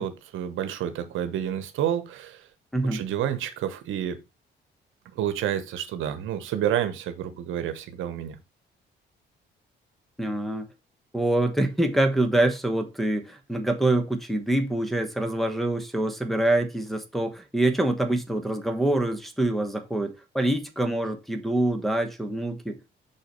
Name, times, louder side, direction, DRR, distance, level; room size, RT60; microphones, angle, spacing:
voice 1, 0.0-2.4 2.9-4.2 5.1-8.4, right 10 dB, 80° right, 1.0 m, -29 dB
voice 2, 10.2-10.6 11.1-22.8, right 1 dB, ahead, 1.1 m, -25 dB
5.7 x 4.0 x 5.3 m
cardioid pair, 90°, 20 cm